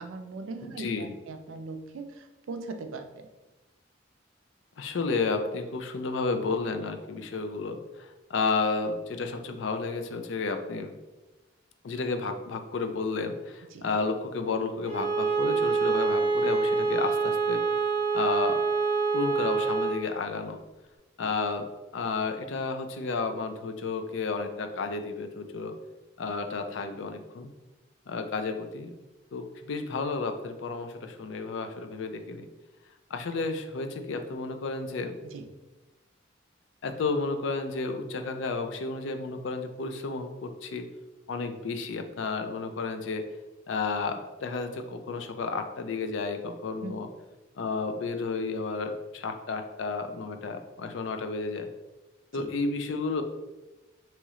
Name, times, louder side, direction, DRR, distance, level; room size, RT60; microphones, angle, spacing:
voice 1, 0.0-3.3 13.7-13.9 35.2-35.4 46.8-47.0 52.3-52.5, right 3 dB, 90° right, 7 dB, 0.4 m, -40 dB
voice 2, 0.6-1.1 4.8-10.9 11.8-17.8 18.1-18.6 19.1-20.6 21.2-21.7 21.9-25.7 26.2-27.5 28.1-29.0 29.3-32.5 33.1-35.2 36.8-40.9 41.3-43.2 43.7-47.1 47.6-51.7 52.3-53.2, left 4 dB, 75° left, 7 dB, 0.4 m, -32 dB
Bowed string instrument, 14.8-20.0, right 4 dB, 30° right, 0.8 m, -26 dB
3.0 x 3.0 x 3.6 m, 1.1 s
head